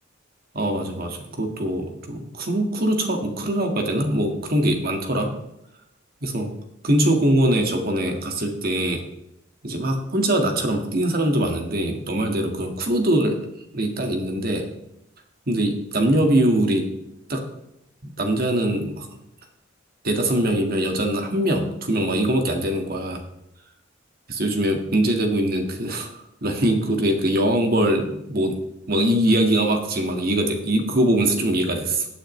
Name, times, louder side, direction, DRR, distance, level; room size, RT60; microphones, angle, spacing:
voice 1, 0.5-5.3 6.2-6.5 6.8-9.0 9.6-13.4 13.7-14.7 15.5-17.0 17.3-17.4 18.2-19.1 20.0-23.2 24.3-26.1 26.4-28.6 28.9-32.1, right 1 dB, 50° right, 3 dB, 1.8 m, -22 dB
16.5 x 8.9 x 3.2 m, 0.82 s
head